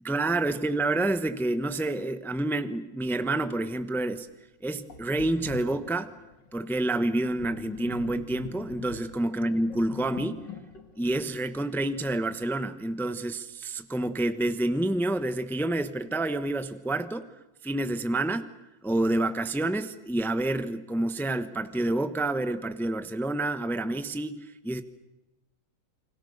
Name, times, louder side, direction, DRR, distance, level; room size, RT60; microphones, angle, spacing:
voice 1, 0.0-4.3 4.6-6.1 6.5-10.4 11.0-17.3 17.6-18.4 18.8-24.4 24.6-24.8, right 2 dB, ahead, 10 dB, 1.0 m, -28 dB
Sink (filling or washing), 4.2-4.3 4.9-12.2, left 6 dB, 75° left, 2.8 m, -45 dB
29.0 x 25.5 x 6.7 m, 0.98 s
omnidirectional pair, 1.9 m